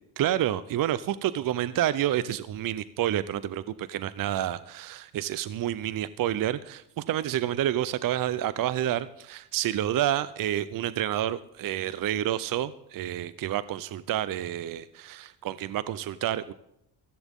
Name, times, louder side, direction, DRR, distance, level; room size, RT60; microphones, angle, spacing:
voice 1, 0.2-16.5, right 12 dB, 50° right, 16 dB, 0.7 m, -29 dB
15.5 x 14.5 x 3.7 m, 0.81 s
supercardioid pair, 85°, 42 cm